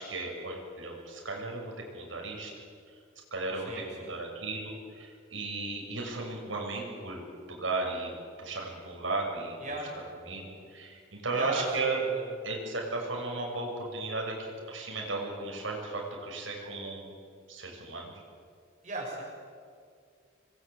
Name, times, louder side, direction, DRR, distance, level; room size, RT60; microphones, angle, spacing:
voice 1, 0.0-1.6 1.9-2.5 3.3-7.2 7.5-8.1 8.4-9.7 10.2-12.0 12.4-17.1 17.5-18.1, right 3 dB, 90° right, -1 dB, 6.9 m, -35 dB
voice 2, 3.6-4.1 9.6-9.9 11.3-11.7 12.0-12.2 18.8-19.2, right 2 dB, 40° right, -1 dB, 6.8 m, -36 dB
27.0 x 22.0 x 8.5 m, 2.1 s
head